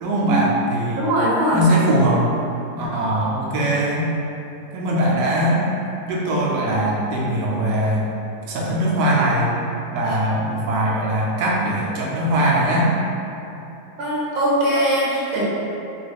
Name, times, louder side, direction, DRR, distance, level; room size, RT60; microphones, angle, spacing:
voice 1, 0.0-1.1 1.5-2.3 2.8-4.1 4.7-5.6 6.1-8.1 8.5-9.5 9.9-12.9, right 1 dB, 90° right, -5 dB, 1.2 m, -21 dB
voice 2, 1.0-1.7 14.0-15.4, equal, 60° right, -7 dB, 1.2 m, -21 dB
3.4 x 2.3 x 3.3 m, 2.8 s
omnidirectional pair, 1.7 m